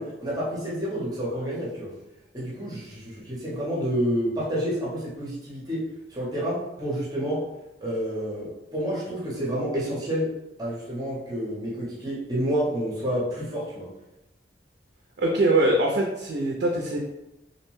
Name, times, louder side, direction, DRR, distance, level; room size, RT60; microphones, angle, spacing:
voice 1, 0.0-1.9 2.3-5.8 6.1-7.4 7.8-10.3 10.6-13.9, equal, 20° right, -6 dB, 0.6 m, -29 dB
voice 2, 15.2-17.0, right 2 dB, 60° right, 0 dB, 0.4 m, -23 dB
2.6 x 2.1 x 3.0 m, 0.93 s
head